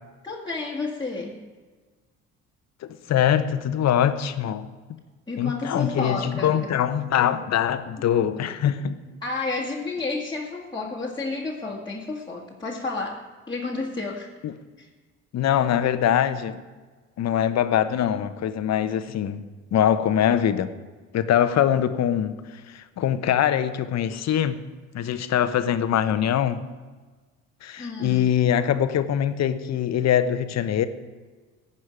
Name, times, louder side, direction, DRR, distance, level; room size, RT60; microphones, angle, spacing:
voice 1, 0.2-1.4 5.3-6.7 7.2-7.4 8.4-8.6 9.2-14.3 14.8-14.9 27.8-28.3, left 3 dB, 15° left, -4 dB, 2.1 m, -31 dB
voice 2, 2.8-4.7 5.4-8.9 14.4-14.5 15.3-16.6 17.2-19.4 19.7-20.7 21.1-22.3 22.7-24.6 24.9-26.6 27.6-30.9, left 10 dB, 55° left, 12 dB, 1.0 m, -23 dB
15.5 x 5.5 x 10.0 m, 1.4 s
supercardioid pair, 70°, 31 cm